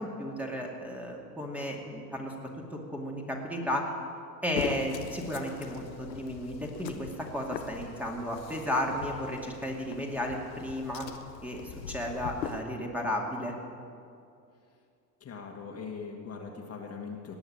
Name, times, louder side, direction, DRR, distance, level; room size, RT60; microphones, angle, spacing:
voice 1, 0.0-2.3 2.7-3.8 4.4-11.1 11.4-13.5, equal, 5° right, -1 dB, 2.3 m, -34 dB
sound 1, 4.6-12.6, left 7 dB, 80° left, 1.1 m, -41 dB
voice 2, 15.2-17.4, left 5 dB, 30° left, 1 dB, 2.0 m, -41 dB
18.5 x 7.0 x 8.7 m, 2.5 s
hypercardioid pair, 90°, 49 cm